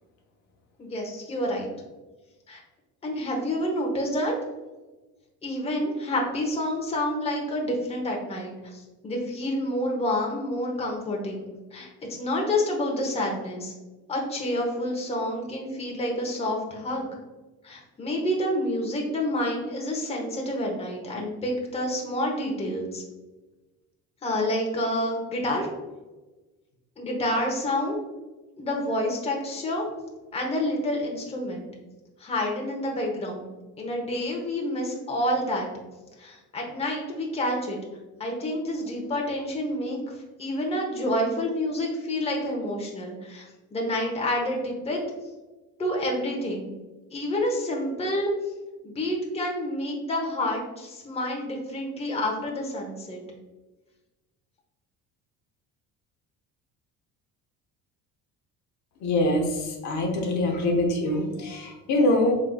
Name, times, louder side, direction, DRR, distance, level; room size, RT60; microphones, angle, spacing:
voice 1, 0.8-1.7 2.5-2.6 3.0-4.3 5.4-13.7 14.1-17.1 17.6-23.0 24.2-25.7 27.0-28.0 28.6-29.9 30.3-31.7 32.2-33.5 33.8-35.7 36.2-37.8 38.2-40.0 40.4-43.5 43.7-45.0 45.8-46.7 47.1-48.3 48.8-53.2, left 1 dB, 20° left, -1 dB, 0.9 m, -28 dB
voice 2, 59.0-62.3, left 1 dB, 65° left, 1 dB, 1.0 m, -24 dB
4.7 x 3.7 x 2.3 m, 1.2 s
cardioid pair, 130°, 32 cm